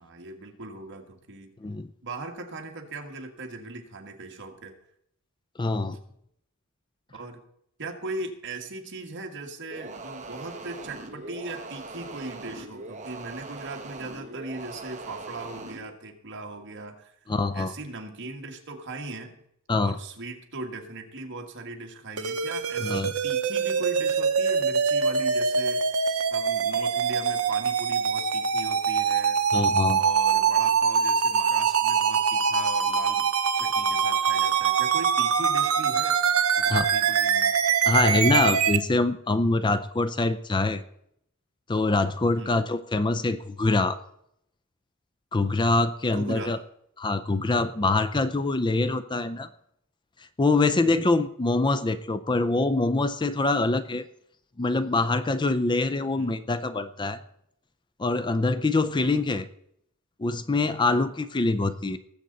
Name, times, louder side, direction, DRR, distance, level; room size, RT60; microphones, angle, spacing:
voice 1, 0.0-1.5 2.0-4.7 7.1-7.4 7.8-17.2 17.5-19.4 19.8-26.0 26.3-29.4 29.9-33.3 33.6-36.2 36.6-37.5 42.3-42.6 46.1-46.6 50.8-51.1 56.1-56.4 59.0-59.2 60.8-61.0, right 2 dB, 55° right, 3 dB, 1.9 m, -39 dB
voice 2, 5.6-6.0 17.3-17.7 19.7-20.0 22.8-23.1 29.5-30.0 36.7-36.9 37.9-40.8 41.7-44.0 45.3-46.6 47.0-49.5 50.4-54.1 54.6-57.2 58.0-59.5 60.2-62.0, left 2 dB, 20° left, 12 dB, 0.5 m, -24 dB
sound 1, 9.7-15.8, right 3 dB, 35° right, 1.5 m, -41 dB
sound 2, 22.2-38.8, right 6 dB, 70° right, 0.9 m, -24 dB
19.5 x 7.9 x 4.1 m, 0.73 s
head